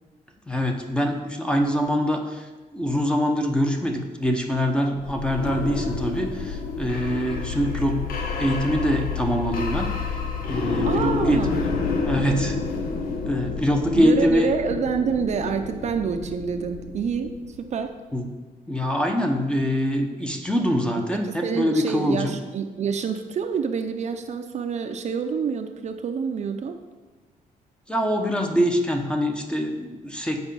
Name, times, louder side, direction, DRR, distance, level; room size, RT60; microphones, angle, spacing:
voice 1, 0.5-8.0 8.4-9.9 10.5-11.7 12.0-12.6 13.3-14.5 18.1-18.3 18.7-22.4 27.9-30.4, equal, 5° left, 3 dB, 0.9 m, -24 dB
sound 1, 5.0-17.8, left 4 dB, 70° left, 1.3 m, -29 dB
voice 2, 10.9-11.7 13.9-17.9 21.1-26.8, right 6 dB, 50° right, 6 dB, 0.6 m, -27 dB
8.1 x 5.1 x 7.0 m, 1.3 s
cardioid pair, 145°, 15 cm